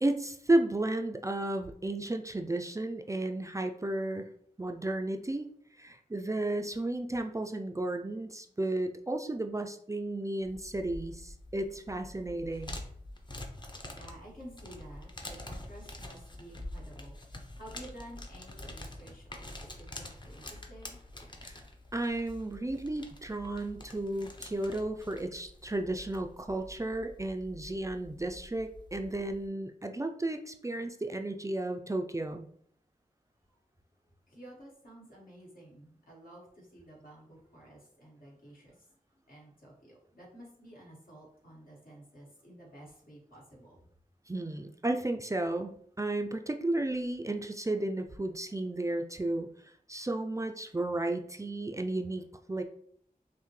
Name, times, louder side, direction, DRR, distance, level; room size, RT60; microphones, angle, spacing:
voice 1, 0.0-4.3 4.6-5.5 5.8-12.8 21.4-21.6 21.9-32.4 44.3-49.5 49.9-52.6, right 2 dB, 20° right, 5 dB, 0.3 m, -33 dB
sound 1, 10.4-29.5, left 1 dB, 30° left, 0.7 m, -46 dB
voice 2, 13.6-21.0 33.5-33.6 34.3-43.9, right 1 dB, 75° left, -4 dB, 1.6 m, -52 dB
5.5 x 2.1 x 3.1 m, 0.65 s
wide cardioid pair, 65°, 15 cm